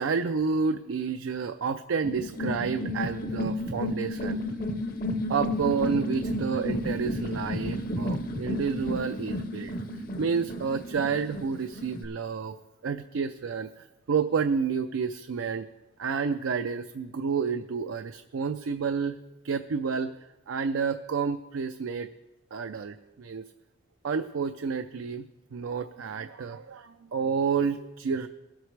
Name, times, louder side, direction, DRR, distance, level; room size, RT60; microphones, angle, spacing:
voice 1, 0.0-4.4 5.3-9.8 10.2-12.6 12.8-15.6 16.0-19.2 19.4-22.1 22.5-23.4 24.0-28.3, right 5 dB, 80° right, 8 dB, 0.4 m, -30 dB
sound 1, 2.0-12.0, left 1 dB, 45° left, 0.8 m, -32 dB
19.5 x 8.1 x 3.3 m, 1.1 s
head